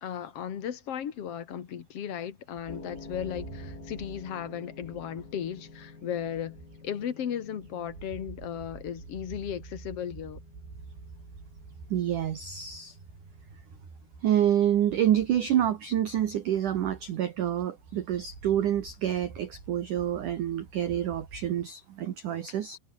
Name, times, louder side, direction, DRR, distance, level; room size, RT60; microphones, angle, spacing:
voice 1, 0.0-6.6 6.8-10.4, left 9 dB, 75° left, 1.3 m, -36 dB
Bird, 2.6-7.0 7.4-21.6, right 4 dB, 50° right, 9.4 m, -48 dB
sound 1, 2.7-20.9, left 4 dB, 25° left, 2.7 m, -52 dB
voice 2, 11.9-13.0 14.2-22.8, right 10 dB, 70° right, 1.9 m, -27 dB
omnidirectional pair, 5.9 m